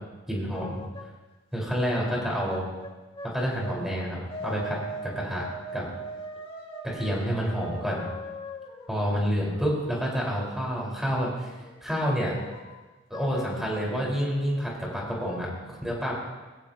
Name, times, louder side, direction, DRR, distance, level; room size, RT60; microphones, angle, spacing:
voice 1, 0.3-0.8 1.5-2.6 3.3-5.5 5.7-5.8 6.9-8.0 8.9-11.5 11.8-12.3 13.1-16.1, equal, ahead, -4 dB, 4.8 m, -28 dB
sound 1, 0.5-1.1 2.5-4.0 4.3-10.7 11.3-12.8 13.1-13.6 14.2-14.3 14.6-15.4, right 1 dB, 25° left, 2.1 m, -41 dB
22.5 x 16.5 x 3.0 m, 1.2 s
head